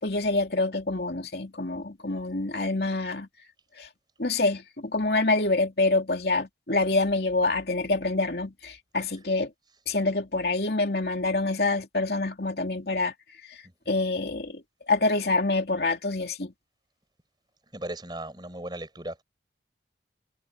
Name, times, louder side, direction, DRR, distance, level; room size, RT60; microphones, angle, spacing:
voice 1, 0.0-3.3 3.8-3.9 4.2-9.5 9.9-13.1 13.4-16.5, left 2 dB, 60° left, 2.9 m, -26 dB
voice 2, 17.7-19.2, right 1 dB, 25° right, 5.8 m, -36 dB
head